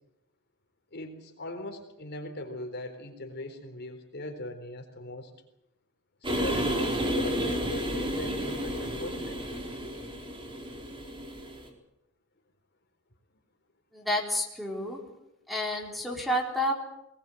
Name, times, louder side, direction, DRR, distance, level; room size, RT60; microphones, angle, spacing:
voice 1, 0.9-5.3 6.4-9.5, left 1 dB, 50° left, 5 dB, 4.0 m, -40 dB
sound 1, 6.2-11.7, equal, 25° right, 4.5 m, -31 dB
voice 2, 13.9-15.0 15.5-16.7, equal, ahead, 1 dB, 4.1 m, -30 dB
20.5 x 20.5 x 8.0 m, 0.84 s
head